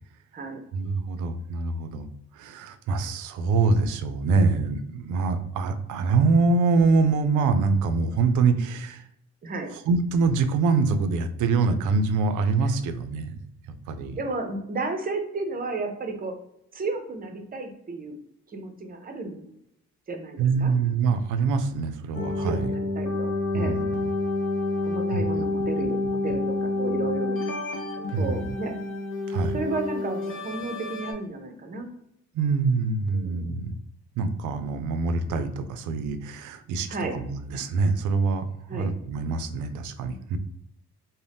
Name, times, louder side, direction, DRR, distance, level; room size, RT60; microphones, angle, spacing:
voice 1, 0.7-2.1 2.3-9.0 9.9-13.4 13.9-14.2 20.4-22.7 23.5-24.1 25.1-25.2 25.6-25.7 28.1-28.6 29.3-29.6 32.3-33.8 34.2-38.4 38.7-40.4, right 4 dB, 80° right, 9 dB, 0.4 m, -24 dB
voice 2, 14.1-16.4 16.7-18.1 18.5-19.5 20.1-20.7 22.4-23.8 24.8-27.4 28.1-28.8 29.5-31.9 33.1-33.5 36.9-37.2 38.7-38.9, right 3 dB, 30° right, 5 dB, 0.6 m, -33 dB
sound 1, 22.1-31.1, left 2 dB, 45° left, 0.6 m, -29 dB
2.6 x 2.1 x 3.3 m, 0.78 s
cardioid pair, 90°, 30 cm